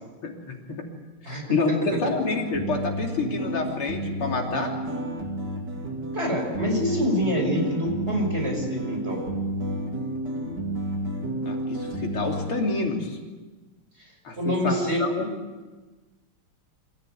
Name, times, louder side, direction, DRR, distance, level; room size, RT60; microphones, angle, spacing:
voice 1, 0.2-0.9 1.3-4.7 11.5-13.2 14.2-15.3, left 3 dB, 75° left, 1 dB, 3.8 m, -28 dB
voice 2, 1.2-1.8 6.1-9.2 14.0-14.1 14.4-15.2, equal, 30° right, 1 dB, 5.9 m, -26 dB
sound 1, 1.9-12.5, right 1 dB, 50° right, 3.3 m, -31 dB
25.0 x 15.0 x 9.3 m, 1.3 s
omnidirectional pair, 2.4 m